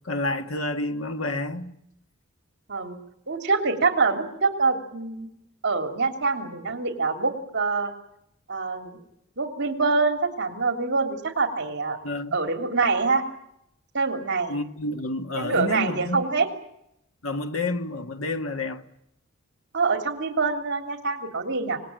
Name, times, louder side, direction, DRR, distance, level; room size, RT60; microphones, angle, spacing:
voice 1, 0.1-1.7 12.0-12.4 14.5-16.2 17.2-18.8, left 2 dB, 70° left, 1.8 m, -29 dB
voice 2, 3.3-5.3 5.6-7.9 8.5-9.0 9.4-12.0 12.3-13.2 13.9-14.5 15.4-16.5 19.7-21.8, right 4 dB, 55° right, 3.2 m, -25 dB
26.5 x 20.0 x 9.0 m
head